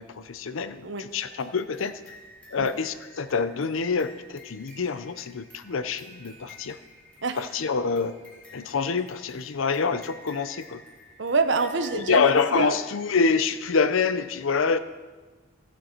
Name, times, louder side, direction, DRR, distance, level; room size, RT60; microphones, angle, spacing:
voice 1, 0.0-1.9 2.5-6.8 7.4-8.1 8.5-10.8 11.9-14.8, left 5 dB, 75° left, 12 dB, 0.6 m, -26 dB
sound 1, 1.1-13.7, left 1 dB, 5° left, 1.9 m, -51 dB
voice 2, 11.2-12.3 12.5-12.7, right 4 dB, 60° right, 9 dB, 0.8 m, -26 dB
15.5 x 6.9 x 4.4 m, 1.3 s
head